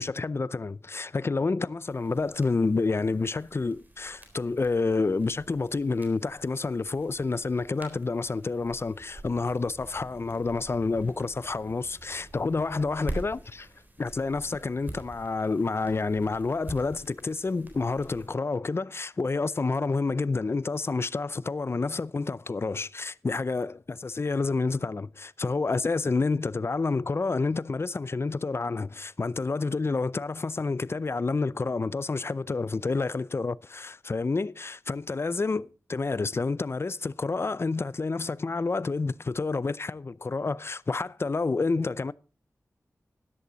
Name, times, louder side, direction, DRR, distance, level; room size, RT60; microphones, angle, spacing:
voice 1, 0.0-13.7 14.0-42.1, left 3 dB, 45° left, 0.5 m, -29 dB
sound 1, 1.9-18.3, right 2 dB, 30° right, 3.7 m, -45 dB
13.0 x 11.0 x 4.0 m
wide cardioid pair, 60°, 6 cm